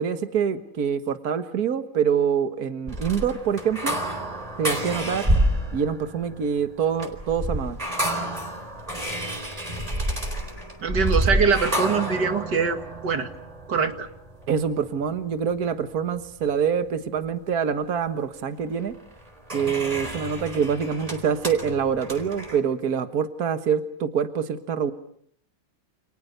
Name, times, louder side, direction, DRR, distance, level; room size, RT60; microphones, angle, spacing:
voice 1, 0.0-4.0 4.6-5.3 5.7-7.8 14.5-18.9 19.5-24.9, right 7 dB, 60° right, 8 dB, 1.9 m, -25 dB
sound 1, 2.9-15.2 18.9-22.6, right 1 dB, 20° right, 4.1 m, -29 dB
voice 2, 10.8-13.3 13.7-14.1, right 5 dB, 90° right, 7 dB, 2.6 m, -23 dB
29.5 x 28.5 x 6.8 m, 0.66 s
omnidirectional pair, 1.8 m